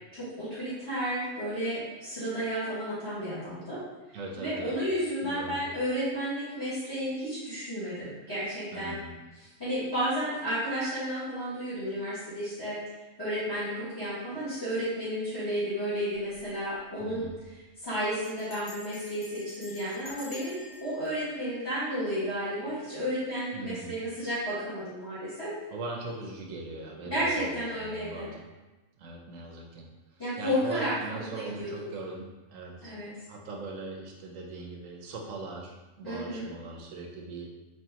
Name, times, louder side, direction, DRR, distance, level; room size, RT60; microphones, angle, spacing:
voice 1, 0.1-3.8 4.4-9.0 9.6-12.8 13.2-17.3 17.8-20.5 20.8-25.5 27.0-28.3 30.2-30.9 31.3-31.7 32.8-33.1 36.0-36.5, equal, 20° left, -14 dB, 1.5 m, -32 dB
voice 2, 4.1-4.8 5.2-5.6 8.7-9.2 17.0-17.3 23.5-24.0 25.7-28.4 29.0-32.9 33.3-37.5, right 2 dB, 85° right, 0 dB, 1.1 m, -40 dB
Bell, 16.1-16.5 16.8-16.9 17.1-17.5 18.2-22.3, left 2 dB, 60° left, 1.1 m, -49 dB
4.3 x 3.0 x 2.8 m, 1.1 s
omnidirectional pair, 1.3 m